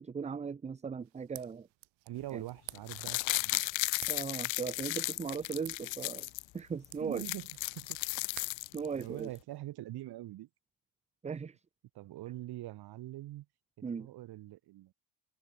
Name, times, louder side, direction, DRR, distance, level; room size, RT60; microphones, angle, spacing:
voice 1, 0.0-1.7 2.3-2.4 4.1-6.3 6.5-7.2 8.4-9.3 11.2-11.5 13.8-14.1, right 6 dB, 15° right, 0.7 m, -38 dB
sound 1, 1.0-9.6, right 20 dB, 75° right, 2.7 m, -54 dB
voice 2, 2.1-3.6 7.0-8.0 9.0-10.5 11.9-13.5 14.0-14.9, right 15 dB, 55° right, 2.1 m, -43 dB
sound 2, 2.7-6.4 6.8-6.9 7.1-9.0 9.4-9.5, left 22 dB, 75° left, 1.2 m, -35 dB
cardioid pair, 165°, 46 cm